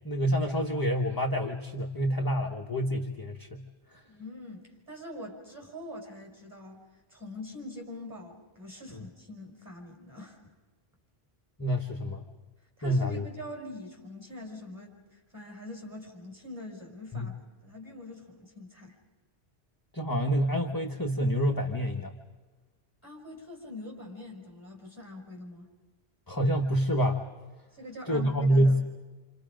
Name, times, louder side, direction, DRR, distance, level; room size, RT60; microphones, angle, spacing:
voice 1, 0.0-3.6 11.6-12.3 12.8-13.2 17.1-17.3 19.9-22.2 26.3-27.2 28.1-28.8, equal, 20° left, 2 dB, 1.2 m, -27 dB
voice 2, 4.1-10.4 12.8-17.3 17.6-19.0 23.0-25.7 27.7-28.8, left 1 dB, 20° right, 0 dB, 5.8 m, -44 dB
28.5 x 28.0 x 5.1 m, 1.3 s
omnidirectional pair, 1.1 m